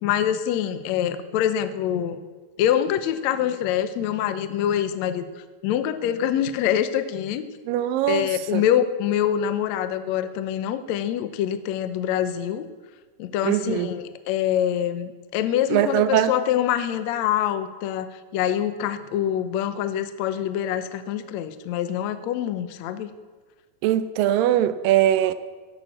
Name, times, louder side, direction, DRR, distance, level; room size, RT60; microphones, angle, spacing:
voice 1, 0.0-2.2 2.6-7.5 8.1-12.6 13.2-23.1, left 10 dB, 80° left, 11 dB, 1.6 m, -25 dB
voice 2, 7.7-8.6 13.4-13.9 15.7-16.3 23.8-25.3, right 12 dB, 75° right, 13 dB, 2.3 m, -21 dB
16.0 x 11.0 x 7.4 m, 1.4 s
omnidirectional pair, 4.4 m